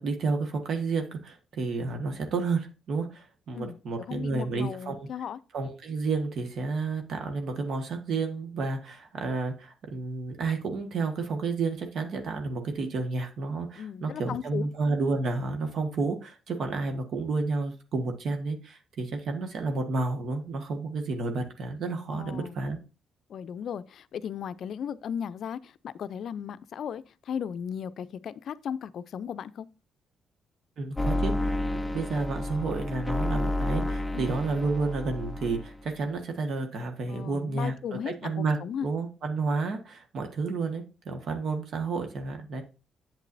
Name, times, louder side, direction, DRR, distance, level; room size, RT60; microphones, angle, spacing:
voice 1, 0.0-5.1 5.5-22.8 30.8-31.6 31.9-42.6, right 3 dB, 65° right, 1.5 m, -31 dB
voice 2, 4.1-5.4 13.8-14.6 22.1-22.6 23.3-29.7 34.1-34.3 37.1-38.9, left 8 dB, 65° left, 0.4 m, -36 dB
sound 1, 31.0-35.9, left 1 dB, 10° left, 0.6 m, -30 dB
8.3 x 7.6 x 2.6 m
cardioid pair, 90°, 0 cm